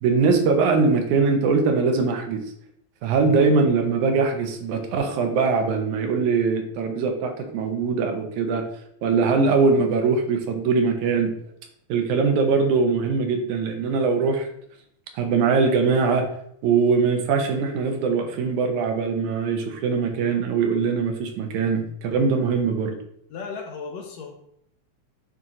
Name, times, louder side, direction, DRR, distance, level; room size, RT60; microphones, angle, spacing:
voice 1, 0.0-2.4 3.0-8.7 9.0-11.3 11.9-14.5 15.1-16.2 16.6-23.0, right 4 dB, 85° right, 4 dB, 2.3 m, -22 dB
voice 2, 23.3-24.3, left 5 dB, 70° left, 2 dB, 1.8 m, -35 dB
8.8 x 3.0 x 3.7 m, 0.71 s
omnidirectional pair, 3.4 m